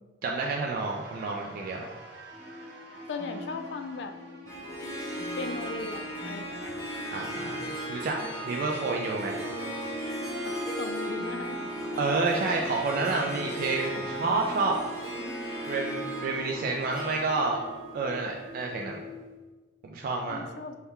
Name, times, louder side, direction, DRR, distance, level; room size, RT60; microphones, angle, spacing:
voice 1, 0.2-1.9 7.1-9.5 12.0-15.1 15.7-17.6 17.9-19.0 19.8-20.4, right 3 dB, 50° right, 0 dB, 0.3 m, -29 dB
sound 1, 0.8-17.6, right 2 dB, 80° right, 0.7 m, -49 dB
sound 2, 2.3-19.3, left 2 dB, 25° right, 1.2 m, -46 dB
voice 2, 3.1-4.2 5.3-6.7 8.2-8.8 10.5-12.0 20.3-20.8, left 4 dB, 65° left, 8 dB, 0.3 m, -39 dB
Harp, 4.5-18.9, equal, 20° left, 0.8 m, -36 dB
3.5 x 2.2 x 4.2 m, 1.3 s
head